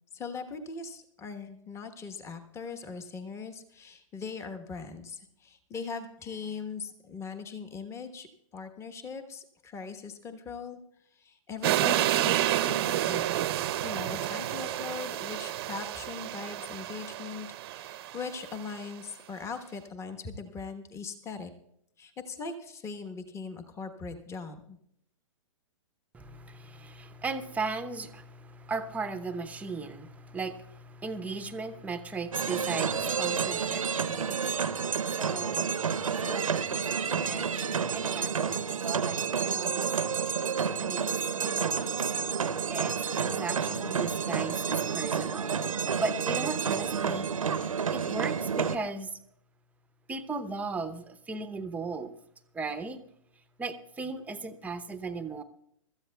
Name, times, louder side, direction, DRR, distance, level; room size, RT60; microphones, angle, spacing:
voice 1, 0.1-8.3 8.5-10.8 11.1-13.2 13.8-21.5 22.0-24.8, left 5 dB, 15° left, 1.2 m, -40 dB
sound 1, 11.6-18.7, right 13 dB, 50° right, 0.7 m, -30 dB
voice 2, 26.1-34.6 35.0-35.7 36.2-39.9 40.6-42.0 42.7-45.5 46.0-47.3 47.9-49.2 50.1-52.1 52.5-53.0 53.6-55.4, right 4 dB, 10° right, 0.8 m, -37 dB
sound 2, 32.3-48.8, right 6 dB, 85° right, 0.8 m, -30 dB
24.5 x 13.5 x 2.3 m
hypercardioid pair, 120°, 17 cm